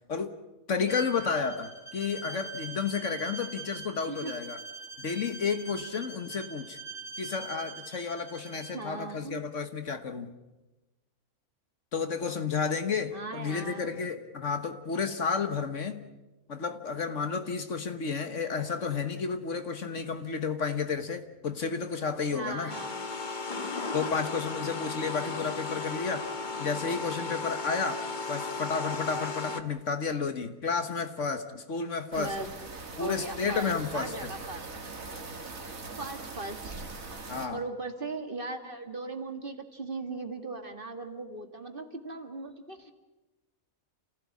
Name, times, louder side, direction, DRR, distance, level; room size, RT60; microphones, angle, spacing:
voice 1, 0.7-4.6 5.0-6.8 7.2-10.3 11.9-16.0 16.5-22.7 23.9-26.3 26.6-32.3 33.0-34.3 37.3-37.6, left 5 dB, 55° left, 9 dB, 1.6 m, -31 dB
Bowed string instrument, 0.9-8.8, right 4 dB, 15° left, 3.1 m, -43 dB
voice 2, 8.7-9.4 13.1-14.0 22.3-23.1 25.1-25.5 32.2-32.5 33.0-34.8 36.0-36.9 37.5-42.9, right 3 dB, 35° right, 6 dB, 2.0 m, -38 dB
sound 1, 22.7-29.6, left 3 dB, 35° left, 1.3 m, -35 dB
sound 2, 32.1-37.5, right 3 dB, 65° right, 2.6 m, -41 dB
28.5 x 16.0 x 8.5 m, 1.1 s
omnidirectional pair, 1.5 m